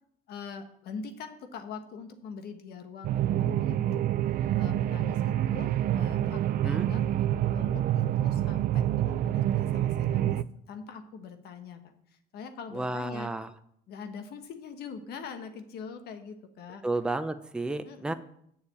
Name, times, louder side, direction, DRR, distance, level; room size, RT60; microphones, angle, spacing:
voice 1, 0.3-4.0 4.6-7.3 7.5-10.4 10.7-11.8 12.3-13.3 13.9-16.8 17.8-18.1, left 5 dB, 70° left, 7 dB, 1.4 m, -43 dB
sound 1, 3.0-10.4, right 12 dB, 60° right, 0.4 m, -27 dB
voice 2, 12.7-13.5 16.8-18.1, right 2 dB, 5° right, 9 dB, 0.6 m, -32 dB
7.2 x 7.1 x 8.1 m, 0.70 s
cardioid pair, 110°, 17 cm